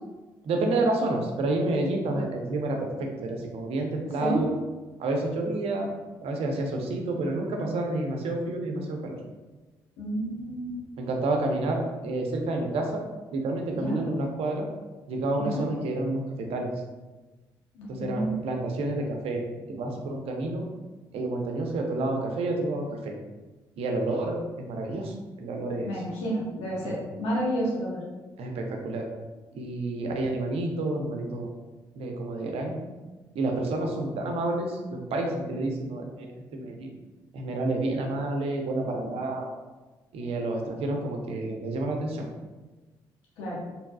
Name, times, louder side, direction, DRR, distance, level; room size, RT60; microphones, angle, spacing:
voice 1, 0.4-4.5 5.0-5.9 6.2-9.2 11.0-13.0 13.3-14.7 15.1-16.7 17.9-20.7 21.1-23.1 23.8-25.9 26.8-26.9 28.4-29.1 29.5-31.5 32.0-32.9 33.3-36.3 36.5-36.9 37.3-39.5 40.1-42.3, right 2 dB, 60° right, 2 dB, 0.7 m, -29 dB
voice 2, 10.0-10.8 13.8-14.0 15.4-15.6 17.7-18.4 25.8-28.0 43.4-43.6, right 1 dB, 70° left, -5 dB, 1.4 m, -30 dB
4.6 x 3.4 x 2.3 m, 1.2 s
hypercardioid pair, 40°, 11 cm